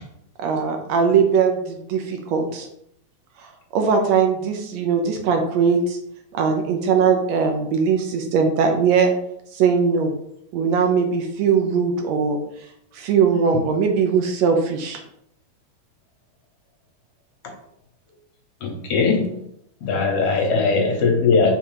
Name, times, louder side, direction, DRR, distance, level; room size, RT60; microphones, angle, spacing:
voice 1, 0.4-2.7 3.4-6.0 6.3-9.1 9.5-10.1 10.5-12.7 12.9-15.0, right 6 dB, 75° right, 4 dB, 1.7 m, -20 dB
voice 2, 18.6-19.3 19.8-21.5, left 4 dB, 70° left, 2 dB, 1.4 m, -19 dB
5.5 x 3.7 x 4.7 m, 0.74 s
omnidirectional pair, 3.5 m